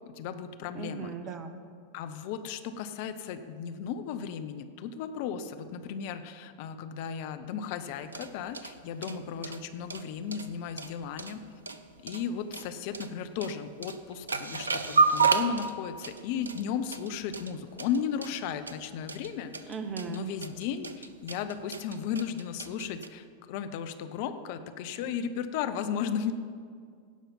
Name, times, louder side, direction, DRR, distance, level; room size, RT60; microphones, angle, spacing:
voice 1, 0.1-1.1 1.9-11.4 12.0-19.7 20.1-26.3, left 7 dB, 50° left, 10 dB, 0.6 m, -35 dB
voice 2, 0.7-1.6 19.7-20.2, right 5 dB, 30° right, 9 dB, 0.8 m, -37 dB
sound 1, 7.9-23.1, right 4 dB, 75° right, 0.5 m, -32 dB
16.5 x 5.7 x 5.5 m, 2.2 s
figure-of-eight pair, 90°, 0 cm